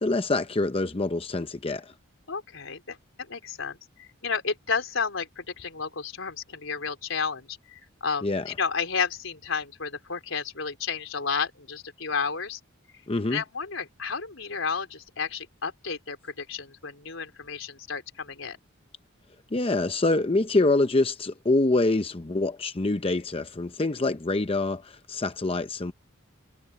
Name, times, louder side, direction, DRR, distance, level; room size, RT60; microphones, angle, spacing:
voice 1, 0.0-1.9 8.2-8.4 13.1-13.4 19.5-25.9, left 2 dB, 30° left, 0.7 m, -25 dB
voice 2, 2.3-12.6 13.3-18.6, left 5 dB, 80° left, 3.9 m, -32 dB
head